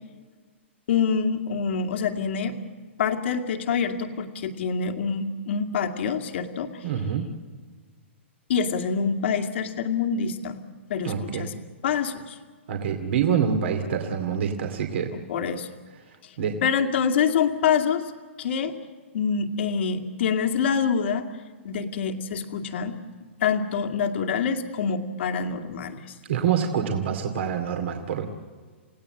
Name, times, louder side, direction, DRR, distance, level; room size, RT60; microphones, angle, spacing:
voice 1, 0.9-2.5 3.0-6.7 8.5-10.6 10.9-11.5 11.8-12.4 15.3-15.7 16.6-18.0 18.4-18.7 19.1-21.3 21.6-23.0 23.4-26.0, left 6 dB, 65° left, 5 dB, 2.4 m, -26 dB
voice 2, 6.8-7.2 11.0-11.5 12.7-15.1 16.4-16.7 26.3-28.3, right 7 dB, 65° right, 4 dB, 2.4 m, -26 dB
30.0 x 17.0 x 7.8 m, 1.5 s
hypercardioid pair, 140°, 7 cm